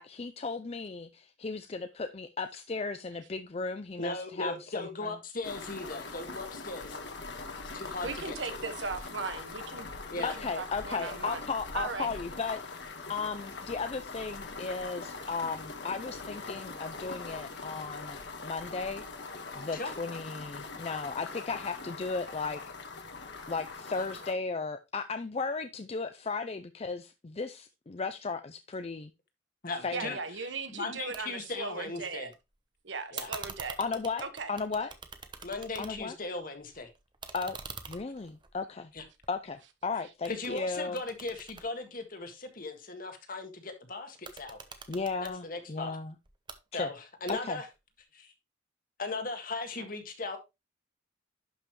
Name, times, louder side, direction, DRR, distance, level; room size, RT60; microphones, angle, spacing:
voice 1, 0.0-5.1 10.2-12.8 13.1-19.0 19.5-22.6 23.5-29.1 29.8-30.2 33.8-34.9 35.8-36.1 37.3-37.6 37.9-38.9 39.3-41.0 44.9-46.1 46.7-46.9 47.3-47.6, left 4 dB, 35° left, 0.5 m, -35 dB
voice 2, 4.0-7.0 7.7-8.6 10.1-10.4 19.7-19.9 29.6-30.1 30.7-32.3 33.1-33.3 35.4-36.9 38.9-39.0 40.3-44.6 45.2-46.0 46.7-47.0 47.2-47.7 48.1-48.3 49.0-50.4, left 3 dB, 50° left, 1.7 m, -38 dB
sound 1, 5.4-24.3, left 3 dB, 65° left, 1.5 m, -42 dB
voice 3, 8.0-11.5 11.7-12.1 29.9-32.3 32.8-33.8 34.2-34.5, right 4 dB, 75° right, 1.5 m, -38 dB
sound 2, 31.1-31.2 31.5-32.4 33.2-36.2 36.6-39.8 40.2-42.5 44.1-45.4 46.2-46.6 47.3-47.7, right 5 dB, 25° right, 0.9 m, -45 dB
11.0 x 5.6 x 3.1 m
head